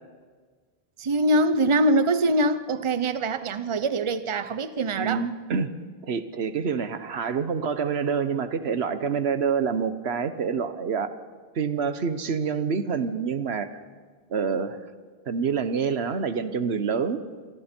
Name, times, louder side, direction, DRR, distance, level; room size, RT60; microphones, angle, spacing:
voice 1, 1.0-5.3, right 1 dB, 35° right, 11 dB, 0.8 m, -23 dB
voice 2, 5.0-5.7 6.0-11.2 11.5-13.8 14.3-14.8 15.3-17.2, right 6 dB, 90° right, 11 dB, 1.3 m, -27 dB
27.0 x 24.5 x 4.5 m, 1.5 s
omnidirectional pair, 1.0 m